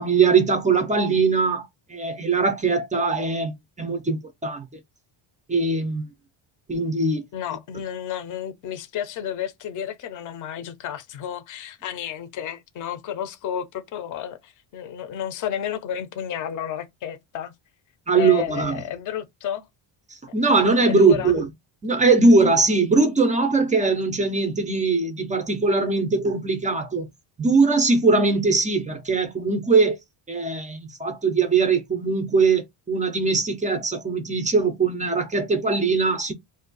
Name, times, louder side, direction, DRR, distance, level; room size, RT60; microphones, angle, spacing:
voice 1, 0.0-4.7 5.5-6.1 6.7-7.3 18.1-18.8 20.3-21.5 21.8-27.1 27.4-30.0 30.3-36.3, right 4 dB, 20° right, 0.3 m, -21 dB
voice 2, 7.3-17.5 18.1-19.6 20.9-21.3, left 9 dB, 40° left, 0.5 m, -32 dB
2.6 x 2.3 x 3.8 m
cardioid pair, 165°, 48 cm